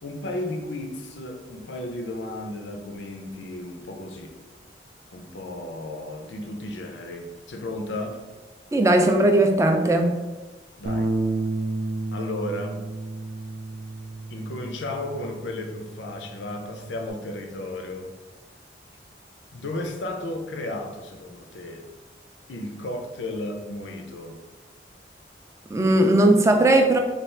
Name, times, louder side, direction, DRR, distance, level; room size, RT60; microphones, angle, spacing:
voice 1, 0.0-4.3 5.1-8.2 10.8-11.1 12.1-12.8 14.3-18.1 19.5-21.9 22.5-24.4, left 1 dB, 90° left, 4 dB, 0.5 m, -34 dB
voice 2, 8.7-10.2 25.7-27.0, right 1 dB, 15° right, 4 dB, 0.3 m, -18 dB
Bass guitar, 10.9-17.1, right 2 dB, 80° right, 0.4 m, -31 dB
3.4 x 2.4 x 4.3 m, 1.2 s
head